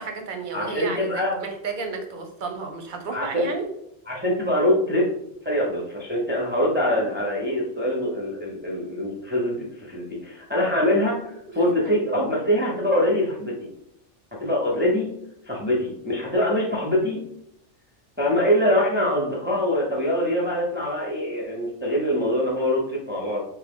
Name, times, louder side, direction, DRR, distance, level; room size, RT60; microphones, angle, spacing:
voice 1, 0.0-3.6 11.8-12.0, right 4 dB, 50° right, 4 dB, 0.8 m, -32 dB
voice 2, 0.5-1.4 3.1-3.4 4.1-5.1 5.4-13.7 14.4-15.1 15.5-17.2 18.2-23.4, left 1 dB, 10° right, -4 dB, 0.7 m, -24 dB
3.7 x 3.1 x 3.6 m, 0.77 s
omnidirectional pair, 1.2 m